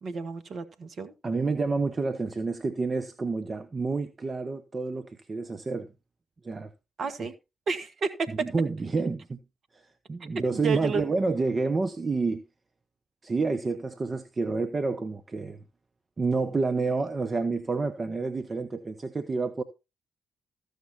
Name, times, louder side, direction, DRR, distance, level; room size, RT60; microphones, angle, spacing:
voice 1, 0.0-1.1 7.0-7.3 7.7-8.5 10.2-11.0, right 5 dB, 45° right, 1.5 m, -31 dB
voice 2, 1.2-5.9 6.4-6.7 7.2-7.3 8.4-9.4 10.1-12.4 13.2-15.6 16.2-19.6, right 3 dB, 30° right, 0.9 m, -29 dB
14.5 x 6.7 x 4.3 m
figure-of-eight pair, 40°, 0 cm